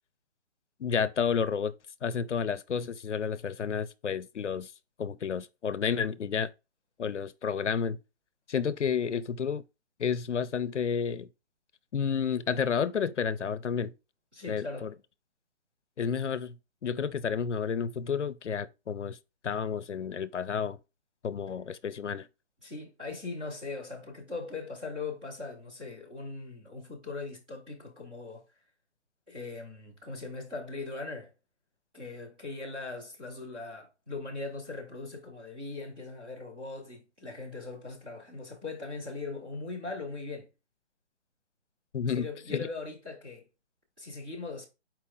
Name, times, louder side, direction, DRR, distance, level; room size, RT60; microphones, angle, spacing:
voice 1, 0.8-1.7 2.0-4.7 5.0-6.5 7.0-8.0 8.5-9.6 10.0-11.3 11.9-13.9 14.5-14.9 16.0-19.2 19.4-20.8 21.2-22.3 41.9-42.7, left 6 dB, 85° left, 0.5 m, -31 dB
voice 2, 14.3-14.9 22.6-28.4 29.3-31.3 31.9-40.5 42.0-43.4 44.0-44.7, left 3 dB, 10° right, 0.5 m, -40 dB
4.6 x 3.0 x 3.7 m
figure-of-eight pair, 145°, 34 cm